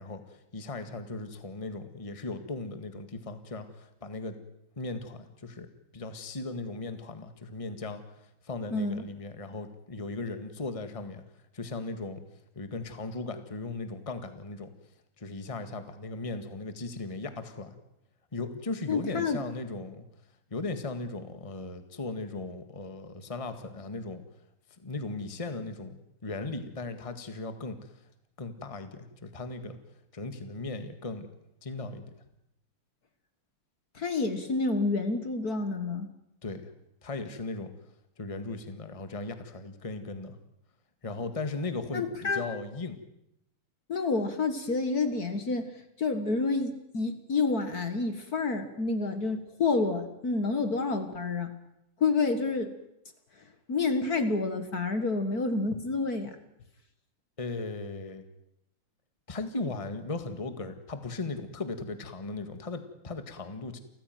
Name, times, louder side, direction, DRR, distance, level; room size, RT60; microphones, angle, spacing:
voice 1, 0.0-4.4 4.8-5.7 5.9-8.0 8.4-11.2 11.5-12.2 12.6-14.7 15.2-17.8 18.3-20.1 20.5-24.2 24.8-27.8 28.4-29.8 30.1-31.3 31.6-32.1 36.4-36.7 37.0-37.7 38.2-40.4 41.0-43.0 57.4-58.2 59.3-63.8, left 3 dB, 15° left, 9 dB, 1.8 m, -37 dB
voice 2, 8.7-9.0 18.9-19.4 34.0-36.1 41.9-42.4 43.9-45.7 46.0-51.5 52.0-52.7 53.7-56.4, left 3 dB, 45° left, 9 dB, 2.1 m, -29 dB
29.0 x 15.0 x 9.3 m, 0.83 s
omnidirectional pair, 2.3 m